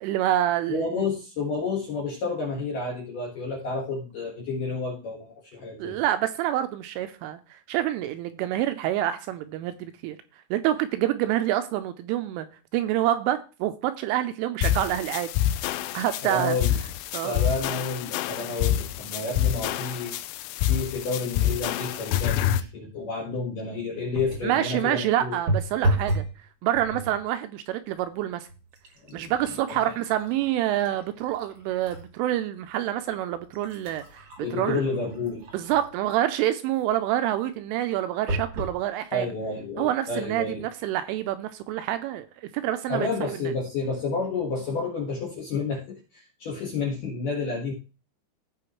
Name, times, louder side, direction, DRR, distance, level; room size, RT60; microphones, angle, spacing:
voice 1, 0.0-0.9 5.8-10.2 10.5-12.5 12.7-15.3 15.6-15.7 15.9-16.6 17.1-17.4 24.4-26.3 26.6-28.5 29.1-34.3 34.5-34.8 35.5-39.3 39.8-43.4, right 12 dB, 85° right, 3.0 m, -27 dB
voice 2, 0.7-6.0 16.2-16.7 17.2-20.1 20.7-25.3 29.0-29.3 29.7-30.0 34.4-35.4 39.1-40.7 42.9-47.7, left 3 dB, 60° left, 2.3 m, -30 dB
sound 1, 14.6-22.6, left 11 dB, 90° left, 3.3 m, -27 dB
sound 2, 24.1-24.6 25.5-26.4 26.7-27.2 28.0-28.1 28.5-32.1 32.6-32.7 33.3-36.1 38.3-38.8 39.5-39.6 39.8-39.9, right 1 dB, 45° right, 1.6 m, -32 dB
16.5 x 5.7 x 3.1 m
omnidirectional pair, 6.0 m